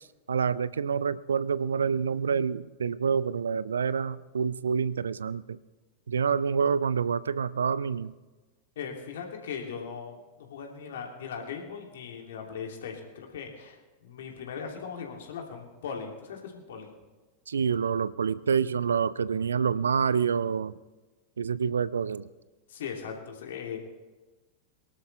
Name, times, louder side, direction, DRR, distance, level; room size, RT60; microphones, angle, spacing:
voice 1, 0.3-5.6 6.1-8.1 17.5-20.7 21.4-22.2, right 6 dB, 70° right, 19 dB, 0.4 m, -27 dB
voice 2, 8.8-16.9 22.7-23.8, left 6 dB, 60° left, 1 dB, 2.8 m, -39 dB
23.0 x 12.5 x 3.4 m, 1.2 s
figure-of-eight pair, 90°, 0 cm